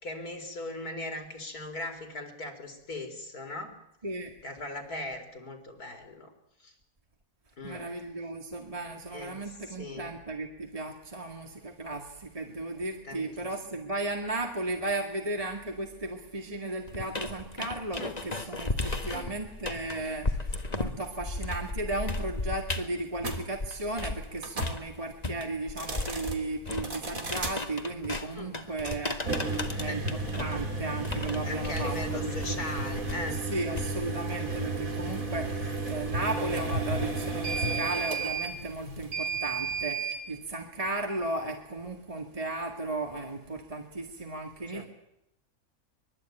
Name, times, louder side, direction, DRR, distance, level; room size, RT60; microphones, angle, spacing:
voice 1, 0.0-3.8 4.4-6.3 6.6-6.7 7.6-7.8 9.1-10.1 13.0-13.5 18.0-18.2 19.1-19.3 27.1-27.2 28.3-28.6 29.9-30.0 31.4-33.4 44.7-44.9, left 2 dB, 75° left, 5 dB, 4.4 m, -39 dB
voice 2, 4.0-4.3 7.6-32.6 33.3-44.9, right 2 dB, 25° right, 2 dB, 2.2 m, -35 dB
sound 1, 16.9-24.3 24.6-34.2, left 2 dB, 25° left, 1.8 m, -35 dB
sound 2, 23.2-23.4 24.4-24.8 25.7-26.4 26.8-27.6 29.2-40.2, right 3 dB, 65° right, 3.7 m, -33 dB
24.5 x 22.5 x 9.1 m, 0.83 s
omnidirectional pair, 1.6 m